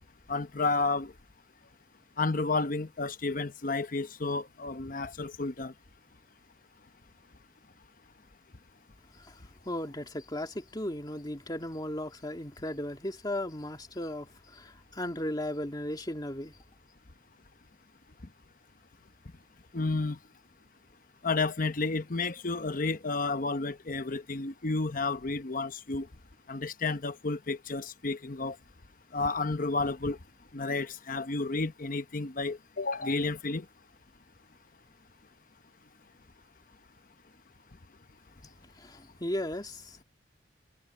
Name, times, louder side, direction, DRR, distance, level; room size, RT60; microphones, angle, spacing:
voice 1, 0.3-1.1 2.2-5.7 19.7-20.2 21.2-26.1 26.5-28.6 29.1-30.2 30.5-33.7, left 3 dB, 45° left, 0.9 m, -31 dB
voice 2, 9.6-16.6 38.4-40.0, left 1 dB, 20° left, 2.6 m, -36 dB
head